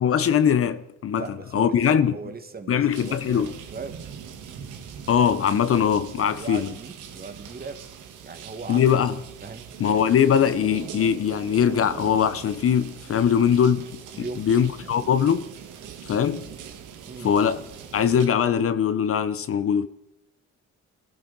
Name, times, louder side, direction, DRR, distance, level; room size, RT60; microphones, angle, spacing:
voice 1, 0.0-1.3 1.5-2.2 2.7-3.5 5.1-6.7 8.7-9.2 9.8-13.9 14.2-15.5 16.1-16.5 17.2-17.6 17.9-19.9, left 8 dB, 50° left, 0.7 m, -21 dB
voice 2, 1.2-4.0 6.3-7.8 8.2-8.9 9.4-9.7 14.1-14.9 17.1-17.3, right 4 dB, 30° right, 1.7 m, -38 dB
sound 1, 2.9-18.3, right 8 dB, 85° right, 1.7 m, -41 dB
22.0 x 15.0 x 4.0 m
cardioid pair, 90°, 30 cm